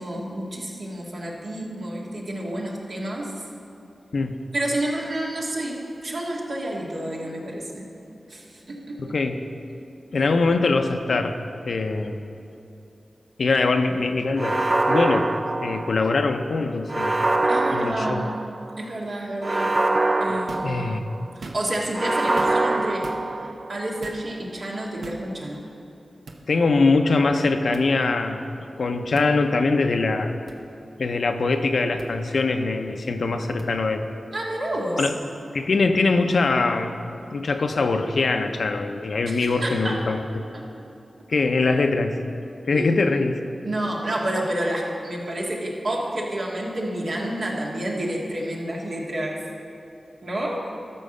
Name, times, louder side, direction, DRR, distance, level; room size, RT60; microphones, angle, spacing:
voice 1, 0.0-3.3 4.5-7.9 8.3-9.1 17.5-18.3 18.8-19.7 20.2-20.9 21.4-23.1 23.7-25.6 34.3-35.0 39.3-40.0 40.5-40.7 42.7-42.9 43.6-49.4 50.2-50.7, right 1 dB, 70° right, -3 dB, 1.9 m, -29 dB
voice 2, 9.0-9.4 10.1-11.4 11.6-12.2 13.4-15.3 15.6-17.3 17.7-18.3 20.3-21.1 26.5-28.4 28.8-30.3 31.0-34.0 35.0-35.1 35.5-40.4 41.3-42.2 42.7-43.4, left 3 dB, 75° left, 6 dB, 0.6 m, -23 dB
sound 1, 14.4-16.2 16.9-18.7 19.4-21.3 21.9-23.8, right 2 dB, 40° right, 0.3 m, -24 dB
sound 2, 20.5-20.8 21.3-21.8 22.4-22.7 23.0-23.2 24.0-24.3 25.0-25.3 26.3-26.4 27.7-27.9 29.1-29.3 30.5-30.6 32.0-32.1 33.6-33.7, right 3 dB, 90° right, 0.8 m, -39 dB
13.0 x 4.6 x 6.6 m, 2.6 s
cardioid pair, 45°, 0 cm